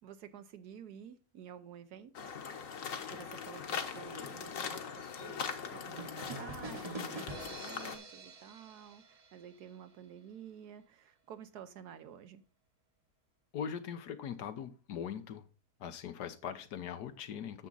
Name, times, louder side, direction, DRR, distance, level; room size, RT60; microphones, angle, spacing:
voice 1, 0.0-2.4 3.1-12.4, right 8 dB, 80° right, 1.4 m, -51 dB
sound 1, 2.1-8.0, left 6 dB, 60° left, 1.4 m, -41 dB
sound 2, 6.0-9.7, right 3 dB, 30° right, 0.9 m, -46 dB
voice 2, 13.5-15.4 15.8-17.7, left 8 dB, 90° left, 1.5 m, -41 dB
9.6 x 7.2 x 3.9 m
omnidirectional pair, 1.7 m